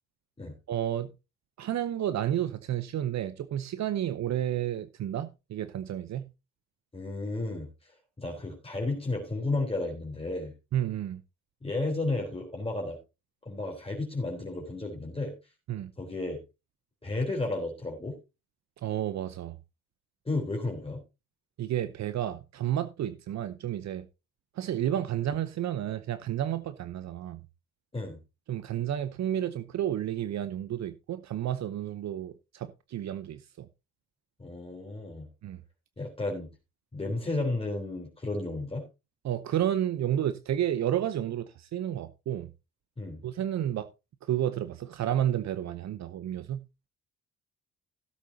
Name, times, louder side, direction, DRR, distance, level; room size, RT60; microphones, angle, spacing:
voice 1, 0.7-1.1 1.6-6.3 10.7-11.2 15.7-15.9 18.8-19.6 21.6-24.1 24.6-27.4 28.5-33.7 35.4-35.6 39.2-42.5 43.2-43.9 44.2-46.6, right 11 dB, 65° right, 0.8 m, -31 dB
voice 2, 6.9-7.7 8.2-10.5 11.6-13.0 13.5-15.3 16.0-16.4 17.0-18.2 20.3-21.0 27.9-28.2 34.4-35.3 36.0-36.5 36.9-38.8 43.0-43.2, left 2 dB, 20° left, 3.7 m, -32 dB
16.0 x 8.3 x 2.8 m
cardioid pair, 90°, 30 cm